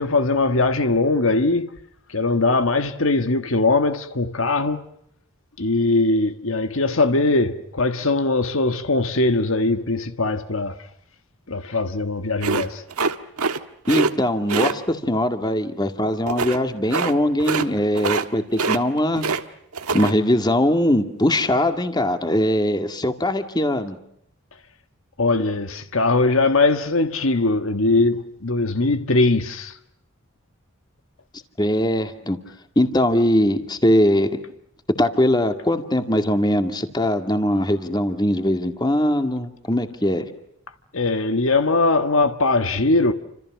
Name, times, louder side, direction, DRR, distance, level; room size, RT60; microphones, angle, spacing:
voice 1, 0.0-1.7 2.1-4.9 5.6-10.8 11.5-12.8 25.2-29.7 40.9-43.1, left 3 dB, 60° left, 1.4 m, -20 dB
sound 1, 12.4-13.6 13.8-14.1 14.5-14.7 16.3-16.6 16.9-17.1 17.4-17.7 17.9-18.3 18.5-19.4 19.7-20.1, right 4 dB, 85° right, 1.6 m, -24 dB
voice 2, 13.9-19.2 19.9-24.0 31.6-32.4 32.8-34.4 35.0-40.3, left 1 dB, 20° left, 2.1 m, -21 dB
29.5 x 27.0 x 6.1 m
head